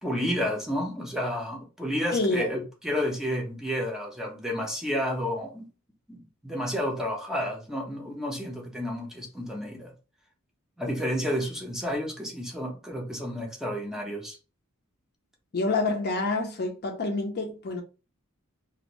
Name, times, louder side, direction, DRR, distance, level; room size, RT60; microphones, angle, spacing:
voice 1, 0.0-5.7 6.1-9.9 10.8-14.4, equal, ahead, 0.6 m, -31 dB
voice 2, 2.1-2.5 15.5-17.8, left 3 dB, 50° left, 0.6 m, -27 dB
2.6 x 2.5 x 3.0 m
head